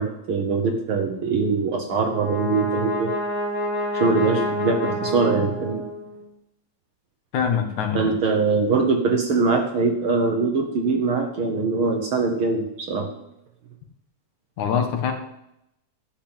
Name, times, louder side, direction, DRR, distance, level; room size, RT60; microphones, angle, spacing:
voice 1, 0.0-3.1 3.9-5.8 7.9-13.1, right 4 dB, 60° right, 4 dB, 1.6 m, -22 dB
Brass instrument, 1.8-6.2, left 1 dB, 35° left, 1.7 m, -28 dB
voice 2, 7.3-8.1 14.6-15.1, left 7 dB, 75° left, 5 dB, 2.9 m, -24 dB
11.5 x 5.8 x 8.8 m, 0.81 s
omnidirectional pair, 3.4 m